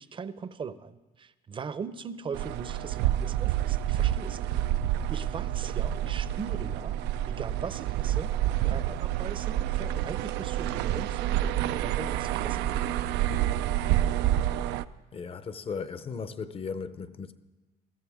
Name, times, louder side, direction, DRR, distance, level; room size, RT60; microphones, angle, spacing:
voice 1, 0.0-4.5 5.1-7.0 7.3-8.3 8.6-12.8, right 6 dB, 30° right, 0.6 m, -40 dB
sound 1, 2.3-14.9, right 12 dB, 90° right, 0.4 m, -28 dB
voice 2, 15.1-17.3, left 5 dB, 35° left, 0.7 m, -36 dB
21.0 x 14.0 x 3.6 m
cardioid pair, 110°, 17 cm